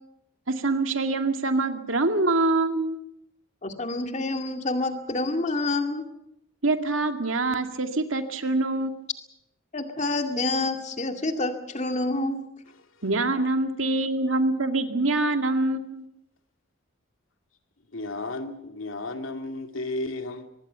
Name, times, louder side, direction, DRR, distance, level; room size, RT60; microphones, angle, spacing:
voice 1, 0.5-3.0 6.6-9.1 13.0-16.1, right 2 dB, 85° right, 2.1 m, -25 dB
voice 2, 3.6-6.1 9.7-12.4, left 2 dB, 35° left, 2.3 m, -28 dB
voice 3, 17.9-20.5, left 2 dB, 85° left, 2.4 m, -33 dB
24.5 x 20.0 x 6.9 m
head